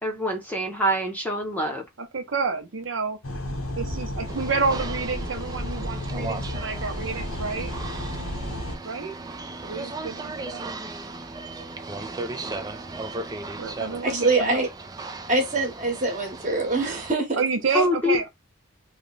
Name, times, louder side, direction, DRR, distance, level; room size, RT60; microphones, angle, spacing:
voice 1, 0.0-1.8 17.7-18.3, equal, 10° left, 0.7 m, -25 dB
voice 2, 2.0-3.2 3.7-7.7 8.8-9.1 9.6-10.7 13.6-14.6 17.4-18.3, right 4 dB, 65° right, 0.7 m, -29 dB
sound 1, 3.2-8.8, left 1 dB, 80° left, 0.9 m, -32 dB
sound 2, 4.3-17.1, right 3 dB, 20° right, 0.3 m, -36 dB
voice 3, 14.0-14.7 15.3-17.4, right 3 dB, 35° right, 1.1 m, -24 dB
3.2 x 2.1 x 3.8 m
head